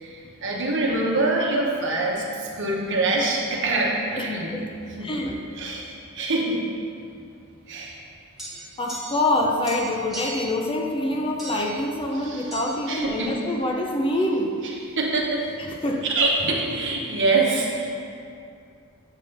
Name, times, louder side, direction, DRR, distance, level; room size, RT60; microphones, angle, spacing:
voice 1, 0.0-4.5 5.0-5.2 5.5-6.7 7.7-8.0 12.1-12.5 12.9-13.3 14.6-15.5 16.0-17.9, right 2 dB, 55° right, -2 dB, 1.0 m, -25 dB
voice 2, 4.9-5.4 8.8-14.6 15.6-16.1, left 1 dB, 25° left, 1 dB, 0.5 m, -25 dB
sound 1, 8.4-9.4 9.6-10.5 11.4-11.8 12.5-12.7, right 1 dB, ahead, 1.4 m, -37 dB
8.1 x 3.6 x 5.5 m, 2.5 s
head